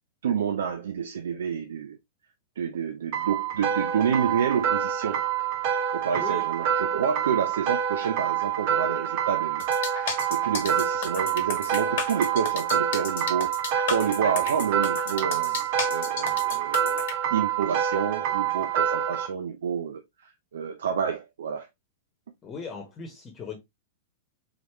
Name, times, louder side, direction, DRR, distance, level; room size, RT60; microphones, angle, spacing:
voice 1, 0.2-2.0 2.6-5.2 5.9-13.5 13.9-17.0 17.3-21.7, right 7 dB, 70° right, 0.5 m, -29 dB
sound 1, 3.1-19.3, right 9 dB, 50° right, 1.0 m, -27 dB
voice 2, 6.1-6.4 22.4-23.6, left 6 dB, 25° left, 1.2 m, -38 dB
sound 2, 9.6-17.1, left 5 dB, 60° left, 1.1 m, -33 dB
4.0 x 3.3 x 2.9 m
figure-of-eight pair, 105°, 0 cm